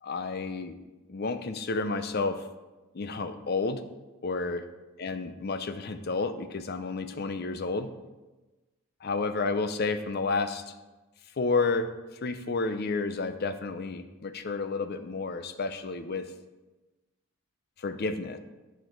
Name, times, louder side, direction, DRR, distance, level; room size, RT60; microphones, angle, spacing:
voice 1, 0.0-0.7 1.1-2.5 2.9-3.8 4.2-4.6 5.0-7.9 9.0-10.6 11.4-11.9 12.2-16.3 17.8-18.4, left 3 dB, 45° left, 10 dB, 0.5 m, -31 dB
10.0 x 4.6 x 4.7 m, 1.1 s
head